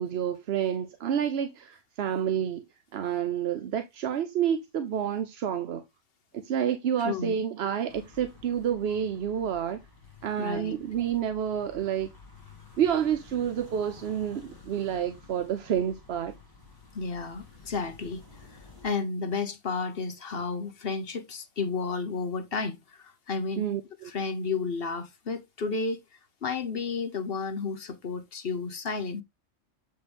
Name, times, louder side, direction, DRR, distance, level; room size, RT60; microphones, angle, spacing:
voice 1, 0.0-2.6 2.9-5.8 6.3-9.8 10.2-12.1 12.8-16.3 23.6-24.1, right 9 dB, 60° right, 0.8 m, -29 dB
voice 2, 7.0-7.3 10.4-10.8 16.9-18.2 18.8-23.7 24.0-26.0 26.4-29.2, left 4 dB, 50° left, 1.2 m, -32 dB
sound 1, 7.9-18.9, left 4 dB, 15° left, 2.6 m, -52 dB
7.4 x 5.3 x 3.4 m
omnidirectional pair, 1.4 m